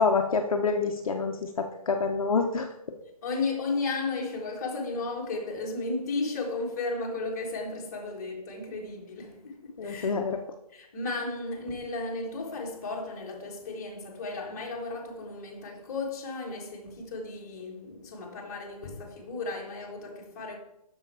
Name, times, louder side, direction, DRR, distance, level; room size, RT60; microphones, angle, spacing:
voice 1, 0.0-2.7 9.8-10.4, left 4 dB, 60° left, 0.8 m, -27 dB
voice 2, 3.2-10.1 10.7-20.6, left 3 dB, 25° left, 1.6 m, -34 dB
7.3 x 6.5 x 4.8 m
hypercardioid pair, 175°, 20 cm